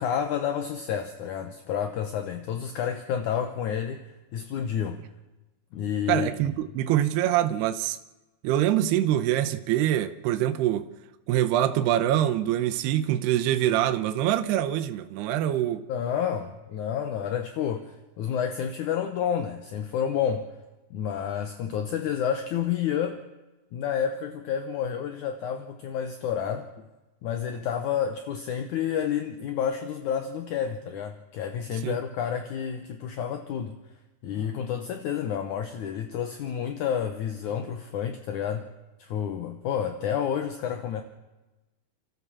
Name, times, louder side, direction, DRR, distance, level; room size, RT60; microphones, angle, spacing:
voice 1, 0.0-5.0 5.7-6.3 15.9-20.6 20.9-23.2 23.7-26.7 27.2-33.8 34.2-38.7 39.0-41.0, left 8 dB, 70° left, 2.0 m, -30 dB
voice 2, 6.1-8.0 8.4-10.9 11.3-15.9 31.8-32.0, right 12 dB, 80° right, 2.9 m, -24 dB
29.5 x 13.5 x 7.2 m
omnidirectional pair, 4.7 m